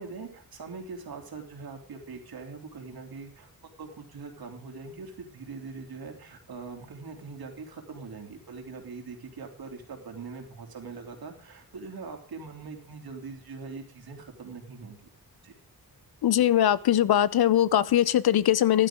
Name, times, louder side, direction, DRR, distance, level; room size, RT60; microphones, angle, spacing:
voice 1, 0.0-15.0 15.4-15.5, right 4 dB, 75° right, 3 dB, 3.0 m, -42 dB
voice 2, 16.2-18.9, left 11 dB, 85° left, 18 dB, 0.7 m, -21 dB
15.0 x 11.5 x 3.7 m, 0.44 s
wide cardioid pair, 160°, 37 cm